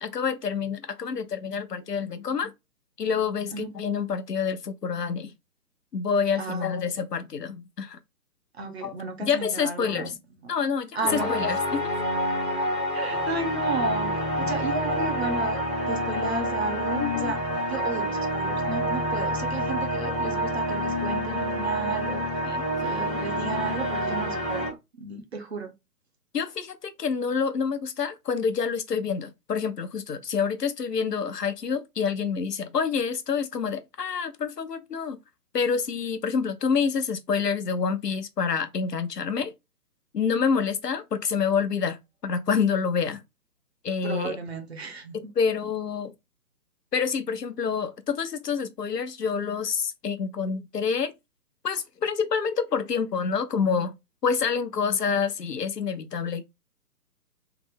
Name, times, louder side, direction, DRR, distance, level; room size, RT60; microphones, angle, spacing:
voice 1, 0.0-2.5 3.0-5.3 5.9-8.0 8.8-8.9 9.2-10.1 10.5-11.9 14.4-14.5 17.0-17.3 22.5-22.6 26.3-35.2 35.5-39.5 40.1-43.2 43.8-44.4 45.1-46.1 46.9-51.1 51.6-53.9 54.2-56.4, left 6 dB, 80° left, 0.7 m, -27 dB
voice 2, 8.6-10.1 10.9-11.3 12.9-17.4 17.7-22.3 22.8-24.7 25.0-25.7 44.0-45.3, right 4 dB, 45° right, 0.6 m, -33 dB
sound 1, 11.0-24.7, equal, 5° left, 0.6 m, -28 dB
3.3 x 2.0 x 3.3 m
figure-of-eight pair, 140°, 48 cm